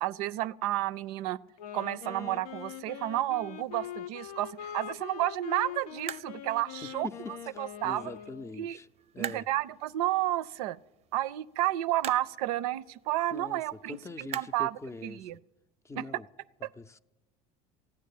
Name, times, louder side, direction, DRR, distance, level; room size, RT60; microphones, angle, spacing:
voice 1, 0.0-1.4 1.7-7.1 7.6-8.1 8.6-8.8 9.2-10.8 11.1-15.4 16.0-16.1, right 15 dB, 80° right, 0.5 m, -31 dB
Wind instrument woodwind instrument, 1.5-8.7, left 10 dB, 85° left, 0.6 m, -43 dB
sound 1, 2.2-15.4, right 9 dB, 35° right, 0.5 m, -47 dB
voice 2, 6.8-8.9 9.1-9.5 13.3-15.3 15.8-16.3 16.6-17.0, left 3 dB, 15° left, 0.5 m, -43 dB
15.0 x 9.6 x 8.5 m
supercardioid pair, 90°, 19 cm